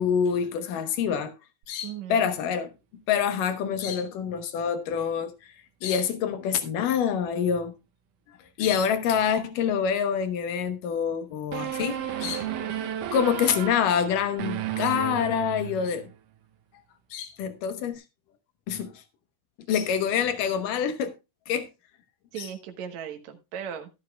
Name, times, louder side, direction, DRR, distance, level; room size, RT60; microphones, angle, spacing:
voice 1, 0.0-1.3 1.7-2.7 3.1-5.5 5.8-7.7 8.6-12.5 13.1-16.1 17.1-18.0 18.7-19.0 19.7-21.1 21.5-21.7 22.4-22.5, left 7 dB, 85° left, 2.8 m, -26 dB
voice 2, 1.8-2.3 22.3-23.9, right 8 dB, 65° right, 2.4 m, -37 dB
sound 1, 11.5-16.2, right 10 dB, 80° right, 2.7 m, -33 dB
13.0 x 12.5 x 2.3 m
omnidirectional pair, 3.7 m